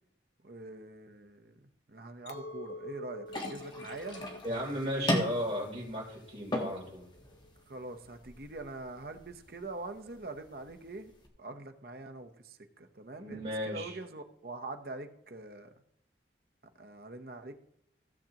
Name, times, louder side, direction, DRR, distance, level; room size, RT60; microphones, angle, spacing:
voice 1, 0.4-1.6 1.9-4.7 4.9-5.1 7.7-11.1 11.4-15.7 16.8-17.5, right 2 dB, 55° right, 6 dB, 0.9 m, -44 dB
Chink clink, 2.3-7.6, left 2 dB, 70° left, 0.8 m, -48 dB
sound 1, 3.3-11.3, left 1 dB, 25° left, 1.4 m, -39 dB
voice 2, 4.4-7.0 13.2-14.0, equal, 35° right, -3 dB, 3.5 m, -35 dB
15.5 x 7.4 x 2.9 m, 0.79 s
head